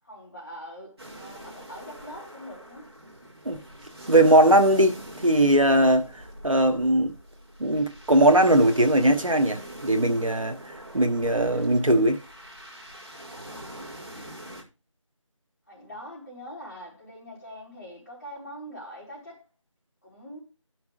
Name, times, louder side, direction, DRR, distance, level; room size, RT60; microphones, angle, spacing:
voice 1, 0.0-2.9 15.7-19.4 20.0-20.4, equal, 30° left, 4.2 m, -43 dB
sound 1, 1.0-14.6, right 1 dB, 50° right, 2.1 m, -43 dB
voice 2, 4.1-5.0 5.2-6.1 6.4-7.1 7.6-10.6 10.9-12.2, right 1 dB, 85° right, 1.2 m, -19 dB
17.0 x 5.9 x 2.4 m
figure-of-eight pair, 170°, 16 cm